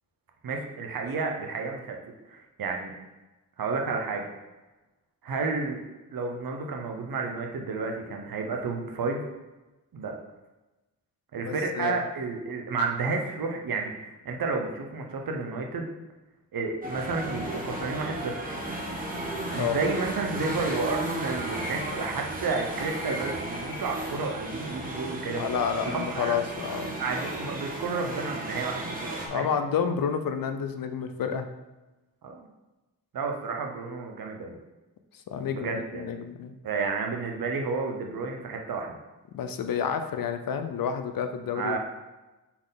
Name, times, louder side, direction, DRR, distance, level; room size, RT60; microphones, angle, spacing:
voice 1, 0.4-2.0 2.3-2.9 3.6-4.3 5.2-5.8 6.1-9.3 9.9-10.1 11.3-15.9 16.5-18.5 19.5-25.4 25.9-26.4 27.0-29.6 32.2-32.5 33.1-34.6 35.5-36.1 36.6-38.9 41.5-41.8, right 4 dB, 80° right, 2 dB, 1.0 m, -31 dB
voice 2, 11.4-12.0 19.6-19.8 25.4-26.9 29.3-31.5 35.3-36.5 39.3-41.8, left 7 dB, 75° left, 8 dB, 0.6 m, -29 dB
sound 1, 16.8-29.3, right 1 dB, 25° right, 1.0 m, -34 dB
5.9 x 4.2 x 4.0 m, 1.1 s
wide cardioid pair, 170°, 35 cm